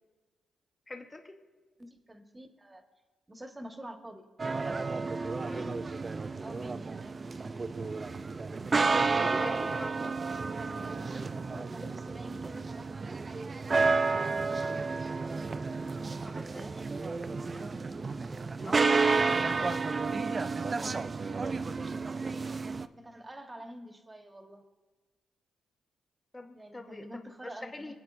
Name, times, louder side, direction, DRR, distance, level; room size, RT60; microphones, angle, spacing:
voice 1, 0.9-1.4 5.2-5.7 9.1-10.2 14.6-14.9 16.2-16.7 17.5-17.6 18.6-19.8 26.3-27.1 27.4-27.9, left 2 dB, 20° left, 4 dB, 1.1 m, -46 dB
voice 2, 1.8-2.8 3.3-4.3 5.2-5.8 6.4-6.9 10.6-12.8 16.3-16.8 22.9-24.6 26.5-27.9, equal, 20° right, 4 dB, 1.5 m, -47 dB
sound 1, 4.4-22.9, right 4 dB, 35° right, 0.5 m, -31 dB
22.5 x 8.5 x 2.6 m, 1.3 s
cardioid pair, 70°, 0 cm